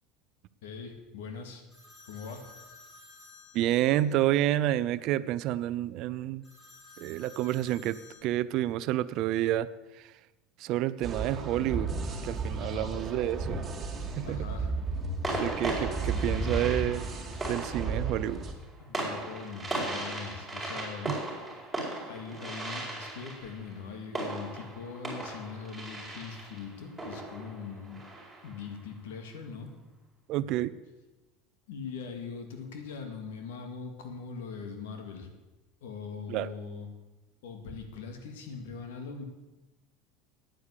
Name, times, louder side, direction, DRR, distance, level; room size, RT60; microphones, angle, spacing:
voice 1, 0.6-1.6 2.0-2.5 12.6-13.0 14.2-14.7 18.8-21.2 22.1-28.0 28.4-29.7 31.7-35.3 35.8-36.9 37.4-39.2, left 5 dB, 90° left, 6 dB, 2.2 m, -41 dB
sound 1, 1.7-4.2 6.4-8.2, left 3 dB, 25° left, 4.5 m, -53 dB
voice 2, 3.5-6.4 7.0-9.7 10.6-11.9 12.2-13.6 14.2-14.4 15.4-17.1 17.5-18.4 21.1-21.2 30.3-30.7 36.3-36.5, right 13 dB, 55° right, 16 dB, 0.5 m, -29 dB
sound 2, 11.0-18.5, right 3 dB, 25° right, 2.2 m, -34 dB
sound 3, 14.0-14.3 15.2-28.6, right 2 dB, 5° right, 4.6 m, -37 dB
9.5 x 9.0 x 8.4 m, 1.1 s
supercardioid pair, 135°, 0 cm